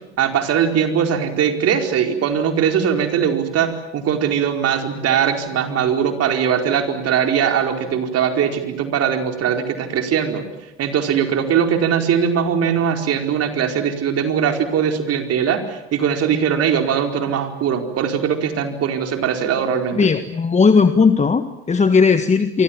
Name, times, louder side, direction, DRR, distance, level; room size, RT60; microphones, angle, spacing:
voice 1, 0.2-10.5 10.8-20.1, right 8 dB, 45° right, 5 dB, 4.7 m, -20 dB
voice 2, 19.9-22.6, left 5 dB, 20° left, 10 dB, 1.6 m, -16 dB
29.5 x 24.5 x 7.5 m, 0.92 s
hypercardioid pair, 70°, 33 cm